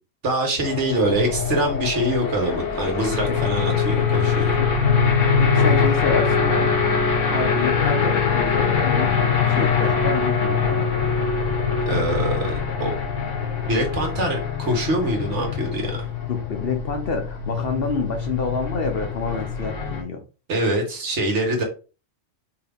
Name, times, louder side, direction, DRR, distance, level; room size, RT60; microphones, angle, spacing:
voice 1, 0.2-4.5 11.9-12.9 13.7-15.9 20.5-21.6, right 1 dB, 65° right, 2 dB, 1.6 m, -24 dB
sound 1, 0.6-20.0, left 5 dB, 75° left, 1.3 m, -23 dB
voice 2, 5.4-6.8 7.3-10.9 16.3-20.2, left 4 dB, 55° left, 4 dB, 0.9 m, -28 dB
4.6 x 2.8 x 3.4 m, 0.33 s
omnidirectional pair, 1.3 m